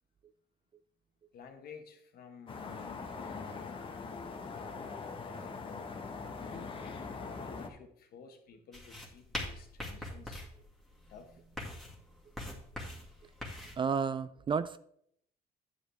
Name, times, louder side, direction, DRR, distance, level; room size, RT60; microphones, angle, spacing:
voice 1, 1.3-3.9 4.5-5.9 6.4-10.4 11.1-11.4, left 6 dB, 60° left, 1.5 m, -52 dB
sound 1, 2.5-7.7, left 4 dB, 30° left, 1.1 m, -42 dB
sound 2, 8.7-13.8, left 1 dB, ahead, 2.0 m, -43 dB
voice 2, 13.8-14.8, right 6 dB, 30° right, 0.4 m, -31 dB
10.0 x 6.8 x 3.5 m
cardioid pair, 110°, 17 cm